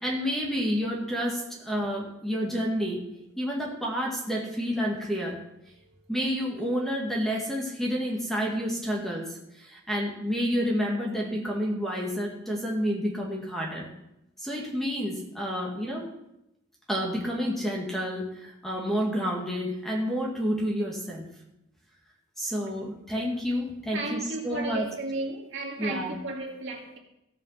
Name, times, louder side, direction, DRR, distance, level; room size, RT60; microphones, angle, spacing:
voice 1, 0.0-3.0 3.4-5.4 6.1-13.9 14.4-16.1 16.9-21.3 22.4-24.9 25.8-26.2, equal, ahead, 2.0 m, -29 dB
voice 2, 23.9-27.0, right 2 dB, 60° right, 2.2 m, -34 dB
16.5 x 5.7 x 5.7 m
head